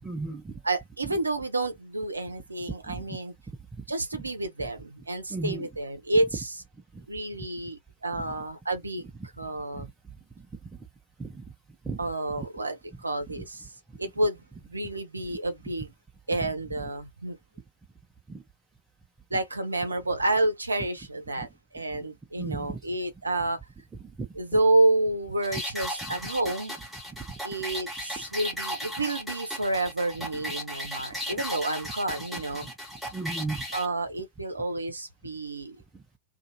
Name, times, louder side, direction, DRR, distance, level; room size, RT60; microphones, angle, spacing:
voice 1, 0.0-0.5 2.9-3.0 5.3-5.7 6.9-7.0 8.2-8.3 11.2-11.4 11.8-12.0 12.4-12.5 13.4-13.5 15.3-15.4 16.4-16.8 18.3-18.4 22.4-22.8 24.2-24.3 26.1-26.2 33.1-33.6, right 3 dB, 15° right, 0.8 m, -35 dB
voice 2, 0.6-3.3 3.9-6.5 7.1-9.1 9.4-9.9 12.0-13.7 14.0-15.9 16.3-17.4 19.3-23.6 24.4-26.7 27.4-32.7 33.7-35.8, right 2 dB, 80° right, 0.7 m, -29 dB
sound 1, 25.4-33.9, equal, ahead, 1.1 m, -36 dB
2.5 x 2.5 x 2.8 m
figure-of-eight pair, 90°, 0 cm